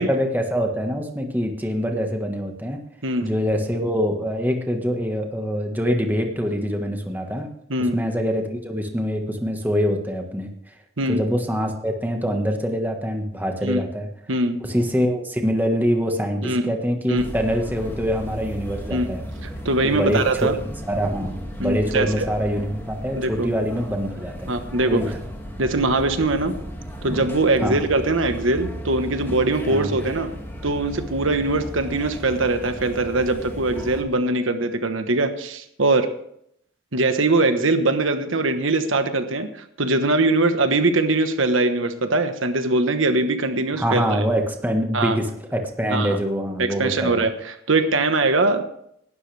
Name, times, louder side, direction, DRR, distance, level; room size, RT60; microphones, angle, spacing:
voice 1, 0.0-2.8 3.2-7.5 7.9-10.7 11.1-14.1 14.6-19.2 19.8-24.5 24.9-25.1 27.6-27.9 29.7-30.0 43.7-47.2, equal, 10° right, 3 dB, 1.5 m, -24 dB
voice 2, 14.3-14.6 16.4-16.7 17.1-17.2 18.9-19.1 19.6-20.5 21.6-22.3 23.1-23.5 24.5-25.0 25.6-26.5 27.0-30.3 30.6-36.1 36.9-39.5 39.8-44.2 44.9-45.2 45.9-46.2 46.6-48.6, right 2 dB, 75° right, 8 dB, 1.3 m, -21 dB
Staten Island Ferry Interior (RT), 17.2-34.0, equal, 10° left, 2.3 m, -35 dB
18.5 x 12.5 x 3.4 m, 0.72 s
head